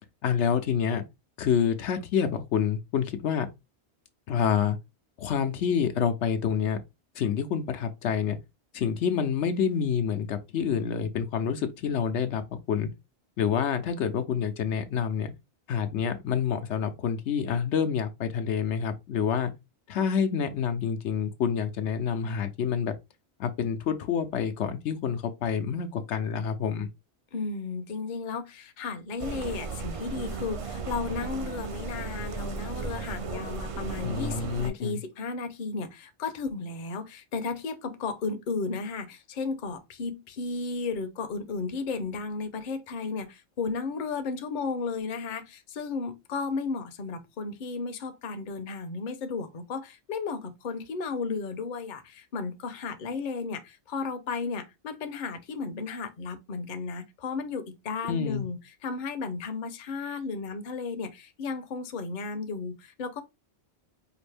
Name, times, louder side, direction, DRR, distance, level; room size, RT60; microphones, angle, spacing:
voice 1, 0.2-1.0 1.4-3.5 4.3-4.8 5.2-6.8 7.1-8.4 8.7-12.9 13.4-15.3 15.7-19.5 19.9-22.9 23.4-26.9 34.0-35.0 58.1-58.5, left 7 dB, 85° left, 1.0 m, -27 dB
voice 2, 27.3-63.2, left 4 dB, 50° left, 0.8 m, -34 dB
sound 1, 29.2-34.7, right 4 dB, 45° right, 0.4 m, -35 dB
4.9 x 2.6 x 3.3 m
omnidirectional pair, 1.1 m